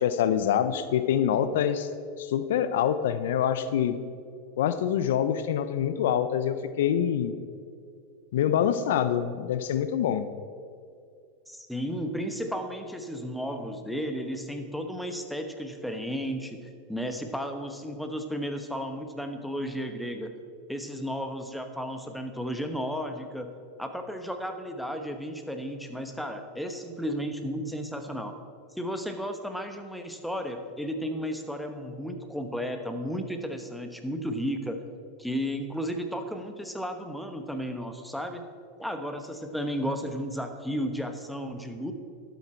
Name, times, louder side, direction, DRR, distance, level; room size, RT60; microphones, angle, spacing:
voice 1, 0.0-1.9 2.2-4.0 4.6-7.4 8.3-10.3, left 9 dB, 75° left, 11 dB, 0.6 m, -25 dB
voice 2, 11.5-16.6 16.9-20.3 20.7-23.5 23.8-28.3 28.8-34.8 35.2-38.4 38.8-41.9, equal, ahead, 6 dB, 1.1 m, -33 dB
12.0 x 8.0 x 4.4 m, 2.3 s
hypercardioid pair, 105°, 0 cm